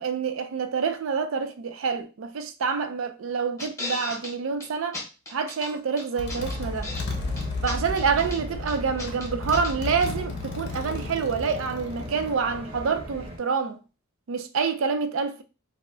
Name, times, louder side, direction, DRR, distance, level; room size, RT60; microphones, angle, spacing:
voice 1, 0.0-5.0 5.3-6.9 7.6-13.8 14.3-15.4, right 5 dB, 70° right, 0.4 m, -27 dB
sound 1, 3.6-4.3 4.6-4.7 4.9-5.7 6.0-7.1 7.4-8.4 8.7-9.7 10.0-10.1, left 2 dB, 15° left, 0.7 m, -36 dB
Motorcycle, 5.6-5.8 6.2-12.3, left 2 dB, 55° left, 0.6 m, -34 dB
sound 2, 6.3-13.4, equal, 25° right, 0.7 m, -39 dB
2.3 x 2.1 x 3.6 m
head